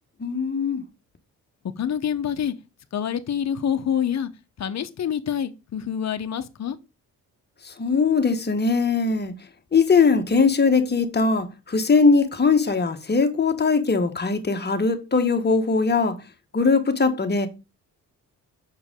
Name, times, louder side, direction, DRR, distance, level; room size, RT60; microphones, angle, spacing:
voice 1, 0.2-0.8 7.6-9.3 9.7-16.2 16.5-17.5, left 4 dB, 30° left, 1.3 m, -20 dB
voice 2, 1.8-2.5 2.9-4.3 4.6-6.8, left 8 dB, 50° left, 0.9 m, -26 dB
6.5 x 4.6 x 3.7 m
cardioid pair, 80°, 35 cm